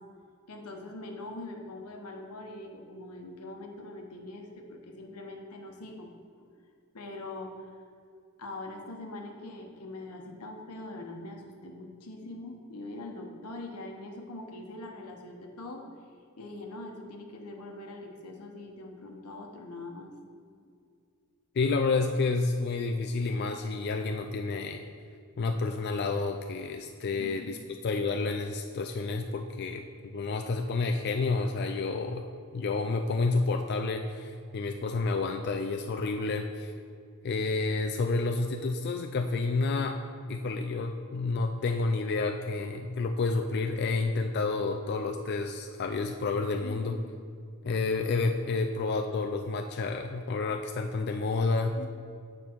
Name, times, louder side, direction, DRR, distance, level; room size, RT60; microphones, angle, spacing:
voice 1, 0.5-6.1 6.9-7.7 8.4-15.9 16.4-20.1 27.2-27.7 46.6-47.1 51.7-51.9, left 2 dB, 90° left, 2 dB, 1.1 m, -43 dB
voice 2, 21.5-24.8 25.4-32.3 32.5-36.7 37.2-40.0 40.3-47.0 47.6-51.8, left 3 dB, 45° left, 4 dB, 0.3 m, -30 dB
8.5 x 5.1 x 4.5 m, 2.3 s
head